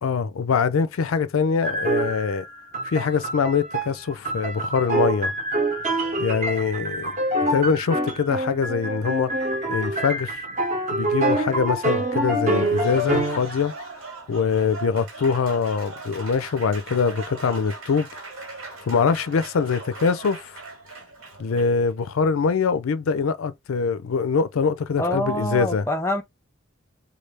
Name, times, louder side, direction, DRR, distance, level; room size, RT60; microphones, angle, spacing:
voice 1, 0.0-2.4 2.8-5.3 6.2-7.1 7.5-9.3 9.7-10.4 10.9-13.7 14.3-18.1 18.8-20.6 21.4-25.9, left 5 dB, 75° left, 0.4 m, -23 dB
sound 1, 1.6-13.5, right 1 dB, 35° right, 0.8 m, -26 dB
Applause, 12.5-21.9, right 3 dB, 80° right, 1.4 m, -39 dB
voice 2, 25.0-26.2, left 1 dB, 10° left, 0.4 m, -25 dB
3.2 x 2.3 x 3.3 m
head